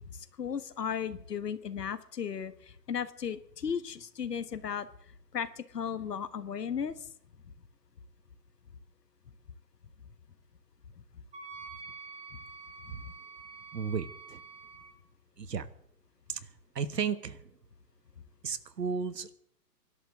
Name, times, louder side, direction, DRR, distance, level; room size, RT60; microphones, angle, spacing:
voice 1, 0.4-2.5 2.9-4.9 5.3-7.0 12.9-13.0, left 7 dB, 70° left, 14 dB, 1.4 m, -35 dB
Wind instrument woodwind instrument, 11.3-14.9, right 4 dB, 15° right, 2.5 m, -47 dB
voice 2, 13.7-14.4 15.4-15.7 16.3-16.4 16.7-17.4 18.4-19.3, right 6 dB, 75° right, 15 dB, 1.4 m, -33 dB
25.0 x 11.5 x 3.6 m, 0.66 s
figure-of-eight pair, 130°, 50 cm